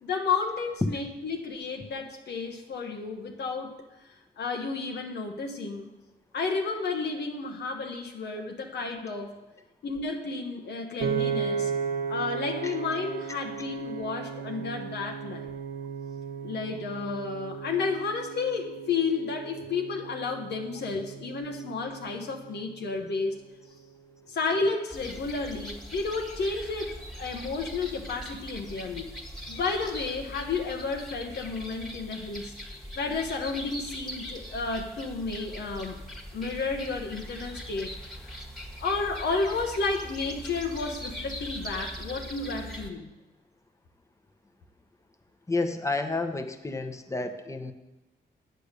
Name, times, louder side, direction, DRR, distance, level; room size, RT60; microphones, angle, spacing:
voice 1, 0.0-3.7 4.4-5.9 6.3-9.4 9.8-11.7 12.1-15.5 16.4-23.4 24.3-29.1 29.5-32.5 33.0-36.0 36.3-38.0 38.2-38.4 38.8-43.1, left 4 dB, 80° left, 2 dB, 1.1 m, -32 dB
Piano, 11.0-23.3, right 7 dB, 85° right, 0.8 m, -35 dB
sound 1, 24.9-42.9, equal, ahead, 1.5 m, -41 dB
voice 2, 45.5-47.7, left 2 dB, 15° left, 8 dB, 1.0 m, -30 dB
8.6 x 6.7 x 6.6 m, 1.0 s
cardioid pair, 80°, 17 cm